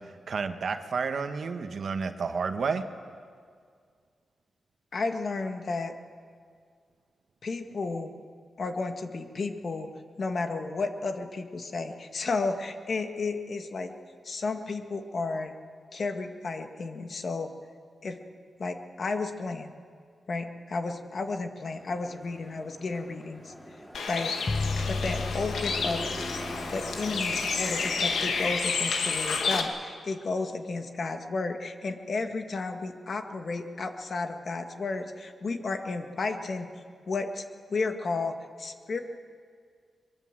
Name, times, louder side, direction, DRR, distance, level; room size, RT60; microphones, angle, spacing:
voice 1, 0.3-2.8, right 5 dB, 65° right, 7 dB, 1.5 m, -30 dB
voice 2, 4.9-5.9 7.4-8.1 8.6-9.9 10.2-13.9 14.2-15.5 15.9-17.5 18.0-18.2 18.6-19.7 20.3-23.5 24.1-24.3 24.9-26.0 26.7-36.7 37.1-37.4 37.7-39.0, left 3 dB, 55° left, 6 dB, 1.8 m, -32 dB
sound 1, 21.6-28.6, equal, ahead, 5.6 m, -42 dB
Bird, 23.9-29.6, left 4 dB, 90° left, 2.1 m, -30 dB
sound 2, 24.5-28.6, left 3 dB, 40° left, 0.7 m, -34 dB
23.0 x 23.0 x 7.6 m, 2.1 s
cardioid pair, 85°, 0 cm